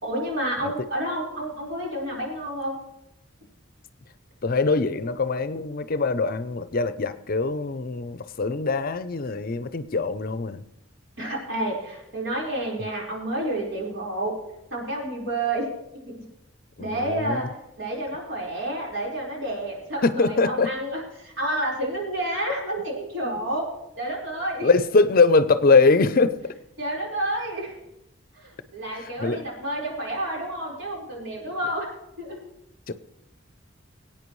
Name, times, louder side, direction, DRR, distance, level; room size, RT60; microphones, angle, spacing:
voice 1, 0.0-2.8 11.2-14.3 14.7-15.7 16.1-16.2 16.8-17.5 17.8-23.7 24.0-24.7 26.8-27.8 28.3-31.9 32.2-32.4, right 1 dB, 70° right, 4.5 m, -29 dB
voice 2, 4.4-10.6 16.8-17.4 20.0-20.7 23.2-23.4 24.6-26.5 29.0-29.4 32.9-33.0, left 4 dB, 45° left, 0.6 m, -22 dB
22.5 x 9.0 x 3.2 m
head